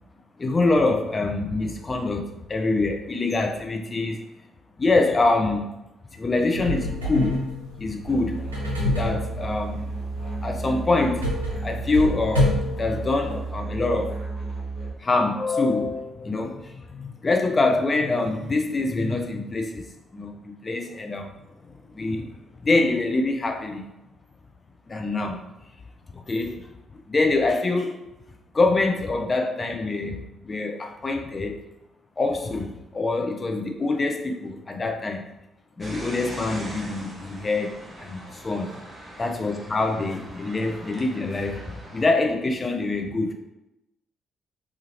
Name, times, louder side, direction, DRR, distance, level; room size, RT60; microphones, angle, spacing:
voice 1, 0.4-4.2 4.8-5.7 6.1-7.5 7.8-8.4 8.7-9.9 10.4-11.3 11.6-14.2 15.0-19.8 20.1-21.3 21.6-22.3 22.6-23.9 24.9-25.4 26.1-28.1 28.5-31.6 32.2-35.2 35.8-38.7 39.2-43.3, left 3 dB, 30° left, 3 dB, 0.5 m, -25 dB
sound 1, 6.5-13.5, left 1 dB, 85° right, 0.5 m, -29 dB
Musical instrument, 8.1-14.9, right 3 dB, 45° right, 1.1 m, -32 dB
sound 2, 35.8-42.1, right 1 dB, 20° right, 0.8 m, -41 dB
2.8 x 2.4 x 3.0 m, 0.93 s
figure-of-eight pair, 40°, 0 cm